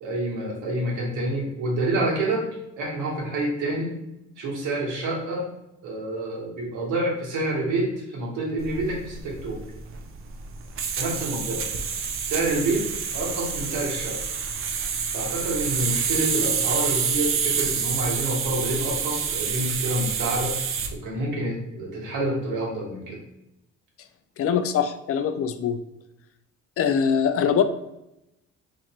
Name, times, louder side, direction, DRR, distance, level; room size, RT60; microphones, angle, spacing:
voice 1, 0.0-2.5 2.8-3.9 4.4-5.5 5.8-9.6 11.0-11.6 12.2-14.2 15.1-20.5 20.9-23.2, right 1 dB, 90° right, -2 dB, 1.2 m, -28 dB
sound 1, 8.6-20.9, right 6 dB, 45° right, 0.5 m, -28 dB
voice 2, 24.4-25.8 26.8-27.6, left 7 dB, 50° left, 10 dB, 0.4 m, -23 dB
3.2 x 2.5 x 4.2 m, 0.88 s
cardioid pair, 90°, 30 cm